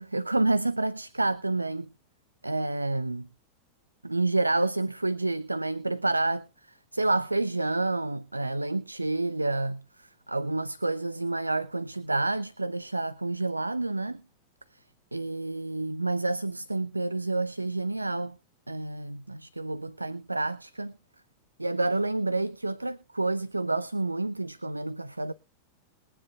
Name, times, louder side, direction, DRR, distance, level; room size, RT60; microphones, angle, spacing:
voice 1, 0.0-1.9 2.4-3.3 4.0-14.2 15.1-18.4 18.7-20.9 21.6-25.3, right 2 dB, 85° right, 0.5 m, -29 dB
21.5 x 9.7 x 2.4 m
figure-of-eight pair, 90°, 0 cm